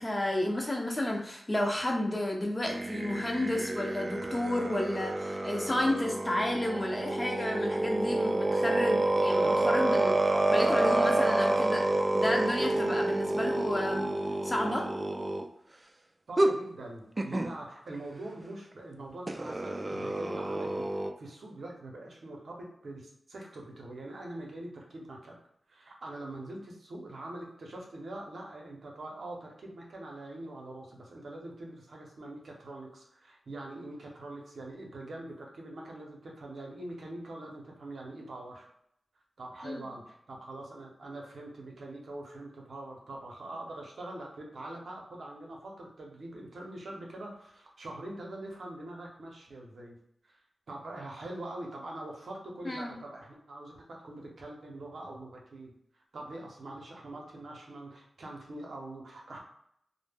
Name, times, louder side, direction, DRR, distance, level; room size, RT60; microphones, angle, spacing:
voice 1, 0.0-10.2 10.5-14.1 14.4-14.9 39.6-39.8 52.6-52.9, left 1 dB, 25° left, 1 dB, 0.6 m, -31 dB
sound 1, 2.6-15.4 16.4-16.5 17.2-17.5 19.3-21.1, right 2 dB, 35° right, 0.3 m, -29 dB
voice 2, 16.3-20.9 21.2-25.4 25.7-38.7 39.4-50.0 50.2-50.4 50.7-55.7 56.1-59.4, right 1 dB, 75° right, -1 dB, 0.6 m, -43 dB
2.1 x 2.0 x 3.3 m, 0.73 s
cardioid pair, 45°, 0 cm